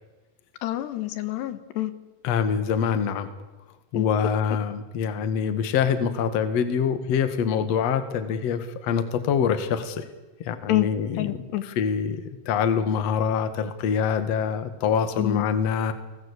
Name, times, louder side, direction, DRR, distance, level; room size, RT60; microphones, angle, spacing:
voice 1, 0.6-1.9 3.9-4.1 10.7-10.9 11.2-11.6 15.2-15.5, left 15 dB, 80° left, 13 dB, 3.5 m, -27 dB
voice 2, 2.2-3.3 3.9-10.1 10.4-11.4 11.8-15.9, left 7 dB, 50° left, 11 dB, 2.4 m, -25 dB
29.5 x 20.0 x 8.4 m, 1.1 s
omnidirectional pair, 4.8 m